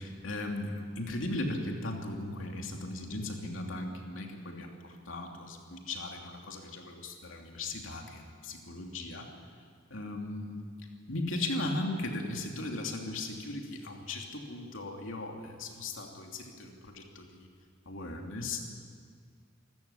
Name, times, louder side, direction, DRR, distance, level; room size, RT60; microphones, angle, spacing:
voice 1, 0.0-9.3 9.9-10.6 11.1-17.5 17.8-18.6, left 2 dB, 75° left, 2 dB, 2.9 m, -37 dB
27.0 x 14.0 x 8.5 m, 2.1 s
head